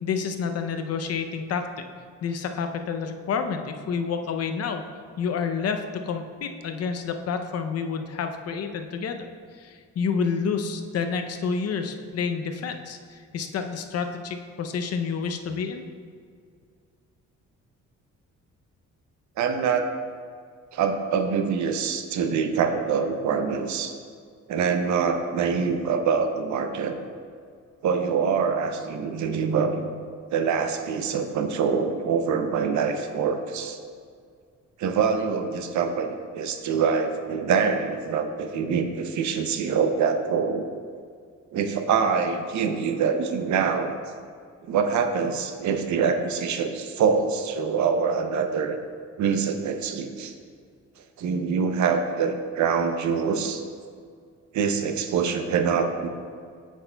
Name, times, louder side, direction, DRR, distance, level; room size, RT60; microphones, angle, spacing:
voice 1, 0.0-1.7 2.2-4.8 5.2-9.3 9.6-15.8, left 6 dB, 55° left, 6 dB, 0.6 m, -29 dB
voice 2, 19.4-19.9 20.7-23.9 24.5-27.0 27.8-29.9 30.3-33.8 34.8-40.6 41.5-44.0 44.7-48.8 49.2-50.3 51.2-53.6 54.5-56.1, right 6 dB, 70° right, 7 dB, 0.7 m, -25 dB
8.1 x 6.2 x 2.2 m, 2.1 s
cardioid pair, 90°, 30 cm